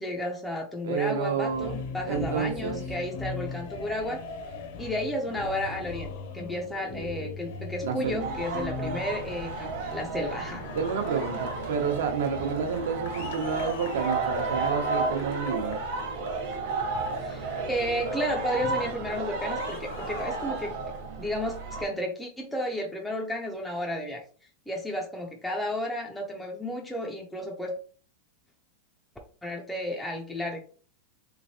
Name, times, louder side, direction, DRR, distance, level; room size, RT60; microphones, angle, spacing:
voice 1, 0.0-4.2 4.8-10.7 17.2-20.7 21.2-24.2 24.7-27.8 29.4-30.6, left 1 dB, 5° left, -1 dB, 0.3 m, -32 dB
voice 2, 0.8-1.7 2.1-2.8 7.8-8.3 10.7-15.8, right 6 dB, 80° right, 5 dB, 0.7 m, -29 dB
sound 1, 1.4-21.0, left 4 dB, 50° left, 0.6 m, -41 dB
sound 2, 8.2-21.9, right 4 dB, 45° right, 0.9 m, -33 dB
3.4 x 3.1 x 2.6 m, 0.43 s
supercardioid pair, 180°, 0 cm